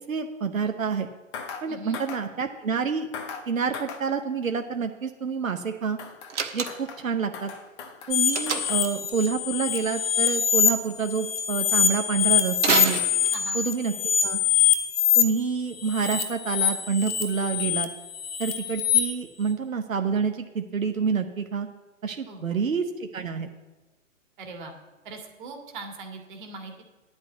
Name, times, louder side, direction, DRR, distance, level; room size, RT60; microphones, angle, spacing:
voice 1, 0.1-1.1 1.6-3.1 3.5-6.0 6.5-7.5 8.1-13.0 13.5-14.4 15.2-17.9 18.4-21.7 22.0-23.5, right 5 dB, 80° right, 5 dB, 0.9 m, -28 dB
sound 1, 1.3-1.7 1.9-2.2 3.1-3.5 3.7-4.0 6.0-6.4 6.7-7.1 7.3-8.2 8.5-8.9 9.1-9.2, left 6 dB, 20° left, 0.8 m, -39 dB
voice 2, 1.7-2.0 13.3-13.6 22.3-22.6 24.4-24.7 25.0-26.8, right 3 dB, 35° right, 3 dB, 1.9 m, -40 dB
Slam, 6.3-7.0 8.3-8.9 12.6-13.7, right 6 dB, 60° right, 1.3 m, -28 dB
sound 2, 8.1-10.7 11.0-15.2 15.8-19.0, left 9 dB, 45° left, 1.6 m, -24 dB
10.0 x 5.4 x 8.1 m, 1.2 s
figure-of-eight pair, 130°, 40 cm